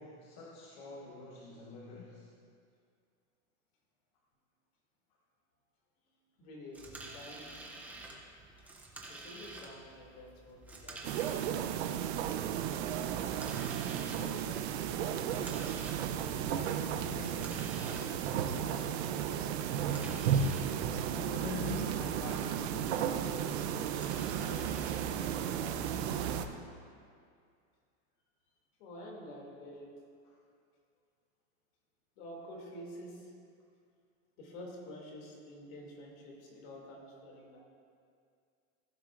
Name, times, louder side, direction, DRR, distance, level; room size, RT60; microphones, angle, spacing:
voice 1, 0.0-2.3 8.9-9.0 13.5-15.8 16.3-20.4 21.1-26.4 30.2-30.4, left 3 dB, 40° left, -4 dB, 1.2 m, -47 dB
voice 2, 6.4-7.7 9.1-12.7 28.8-30.0 32.2-33.3 34.4-37.6, equal, 55° left, -1 dB, 2.7 m, -49 dB
sound 1, 6.7-25.9, right 2 dB, 5° right, 0.5 m, -51 dB
sound 2, 11.0-26.5, right 9 dB, 65° right, 0.7 m, -34 dB
15.5 x 9.2 x 2.5 m, 2.3 s
supercardioid pair, 170°, 36 cm